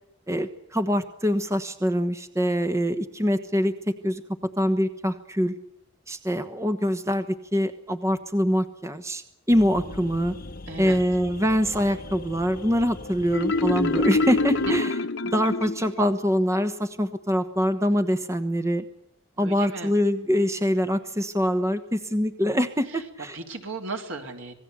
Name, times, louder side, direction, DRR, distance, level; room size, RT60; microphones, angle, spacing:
voice 1, 0.3-3.7 4.0-4.2 4.6-5.5 6.1-10.3 10.8-14.9 15.3-18.8 19.4-23.3, equal, 15° right, 9 dB, 1.2 m, -24 dB
sound 1, 9.5-14.8, left 2 dB, 45° left, 1.0 m, -40 dB
voice 2, 10.7-11.0 14.7-14.8 19.4-19.9 22.9-23.1 23.3-24.5, right 3 dB, 75° right, 4 dB, 4.0 m, -36 dB
Marimba xylophone, 13.3-16.1, left 3 dB, 60° left, 1.4 m, -25 dB
26.5 x 18.5 x 8.3 m, 0.80 s
head